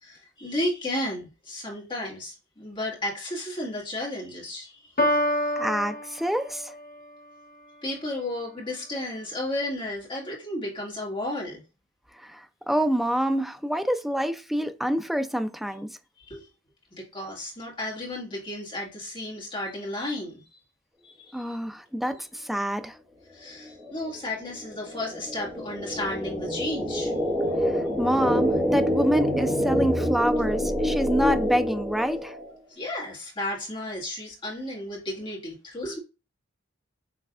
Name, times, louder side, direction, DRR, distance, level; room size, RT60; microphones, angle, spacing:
voice 1, 0.0-5.6 7.8-11.6 16.2-16.5 16.9-20.6 21.0-21.6 22.1-22.2 23.3-27.1 32.7-36.0, left 1 dB, 25° left, 2.1 m, -33 dB
Piano, 5.0-7.0, left 1 dB, 50° left, 1.0 m, -27 dB
voice 2, 5.6-6.7 12.1-16.0 21.3-23.0 27.6-32.4, equal, ahead, 0.4 m, -27 dB
sound 1, 23.7-32.5, equal, 15° right, 1.4 m, -27 dB
6.5 x 3.2 x 2.4 m
head